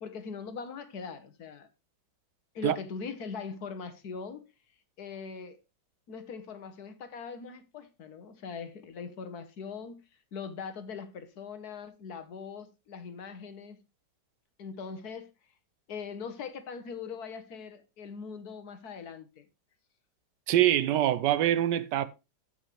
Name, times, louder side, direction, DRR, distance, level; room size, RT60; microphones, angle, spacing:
voice 1, 0.0-1.7 2.5-4.5 5.0-5.6 6.1-10.0 10.3-13.8 14.6-15.3 15.9-19.5, left 5 dB, 65° left, 1.5 m, -41 dB
voice 2, 20.5-22.1, right 12 dB, 80° right, 1.3 m, -24 dB
15.0 x 5.7 x 3.1 m
omnidirectional pair, 1.9 m